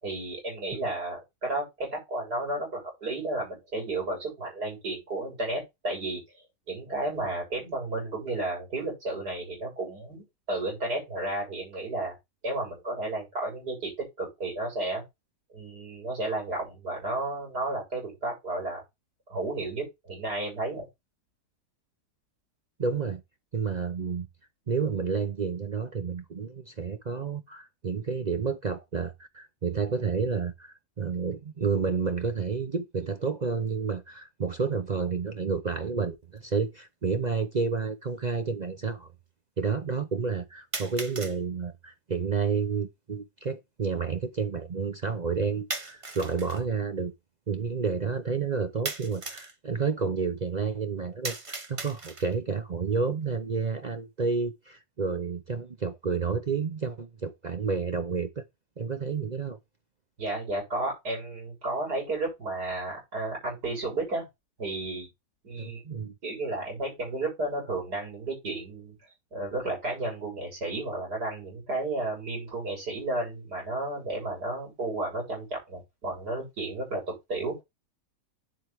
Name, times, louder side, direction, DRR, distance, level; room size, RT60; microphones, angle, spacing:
voice 1, 0.0-6.2 6.7-12.1 12.4-15.0 15.5-18.8 19.3-20.9 60.2-64.3 64.6-65.1 65.4-65.8 66.2-69.0 69.3-77.6, right 2 dB, 80° right, 7.6 m, -32 dB
voice 2, 22.8-23.2 23.5-24.3 24.7-39.1 39.6-47.1 47.5-58.4 58.8-59.6 65.6-66.1, right 5 dB, 45° right, 0.6 m, -30 dB
sound 1, 36.4-36.5 37.4-37.5 40.7-41.4 45.7-46.6 48.9-49.6 51.2-52.4, right 3 dB, 25° right, 0.9 m, -37 dB
9.1 x 7.7 x 3.5 m
omnidirectional pair, 1.7 m